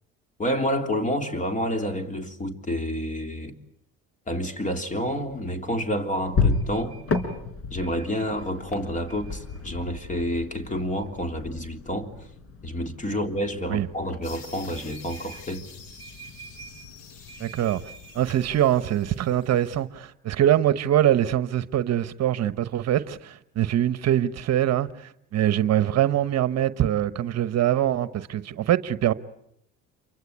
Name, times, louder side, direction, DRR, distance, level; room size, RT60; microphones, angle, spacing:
voice 1, 0.4-3.6 4.3-7.0 7.7-12.1 12.6-15.6, equal, 25° left, 3.3 m, -29 dB
sound 1, 5.1-19.5, left 4 dB, 45° left, 4.4 m, -34 dB
sound 2, 14.2-19.8, left 6 dB, 85° left, 4.6 m, -48 dB
voice 2, 17.4-17.8 18.1-29.1, right 11 dB, 55° right, 1.1 m, -23 dB
28.0 x 24.5 x 8.3 m
supercardioid pair, 95°, 32 cm